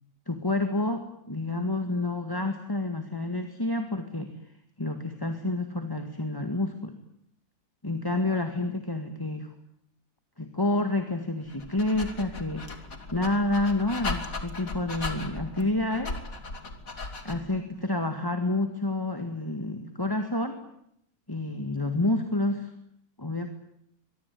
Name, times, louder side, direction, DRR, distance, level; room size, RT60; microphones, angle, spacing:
voice 1, 0.3-4.3 4.8-6.9 7.8-9.5 10.4-12.8 13.1-16.2 17.2-20.6 21.3-22.7 23.2-23.5, left 2 dB, 15° left, 6 dB, 1.9 m, -29 dB
Dog, 11.5-17.6, left 3 dB, 60° left, 3.2 m, -37 dB
24.0 x 23.0 x 9.4 m, 0.74 s
omnidirectional pair, 1.7 m